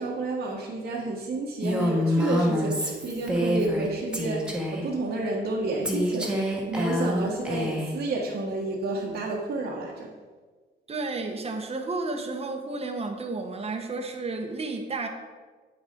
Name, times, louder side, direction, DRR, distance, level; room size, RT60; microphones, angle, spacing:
voice 1, 0.0-10.1, right 2 dB, 65° right, -5 dB, 1.5 m, -30 dB
Female speech woman speaking, 1.6-3.9 4.1-4.9 5.8-8.0, equal, 5° right, 1.5 m, -27 dB
voice 2, 10.9-15.1, right 3 dB, 30° right, 3 dB, 1.2 m, -32 dB
8.4 x 6.4 x 4.6 m, 1.4 s
cardioid pair, 90°, 20 cm